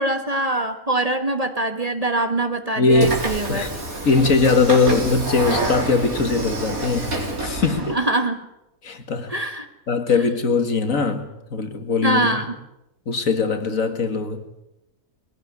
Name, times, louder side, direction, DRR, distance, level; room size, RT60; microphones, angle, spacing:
voice 1, 0.0-3.6 7.9-8.4 9.3-9.7 12.0-12.5, right 2 dB, 25° right, 1.4 m, -23 dB
voice 2, 2.8-3.2 3.5-3.7 4.1-8.0 8.8-9.3 9.9-12.3 13.1-14.4, left 4 dB, 65° left, 2.3 m, -20 dB
Train / Sliding door, 2.9-8.0, right 2 dB, 75° right, 4.1 m, -27 dB
21.5 x 16.5 x 9.6 m
omnidirectional pair, 1.5 m